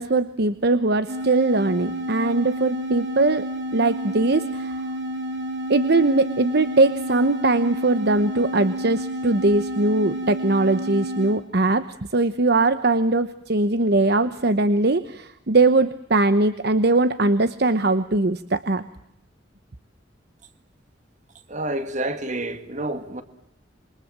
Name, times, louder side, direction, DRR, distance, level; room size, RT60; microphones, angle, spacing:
voice 1, 0.0-4.7 5.7-18.8, right 2 dB, 60° right, 1.0 m, -21 dB
sound 1, 1.1-11.5, right 1 dB, 75° right, 3.4 m, -30 dB
voice 2, 21.5-23.2, right 1 dB, 40° right, 2.3 m, -28 dB
27.5 x 24.0 x 7.6 m
head